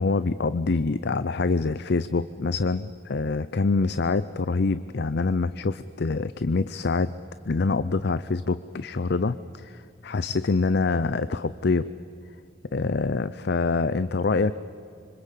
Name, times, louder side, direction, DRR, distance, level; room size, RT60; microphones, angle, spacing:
voice 1, 0.0-7.2 7.4-11.9 12.7-14.5, left 3 dB, 60° left, 14 dB, 0.6 m, -25 dB
25.5 x 25.5 x 8.4 m, 2.7 s
head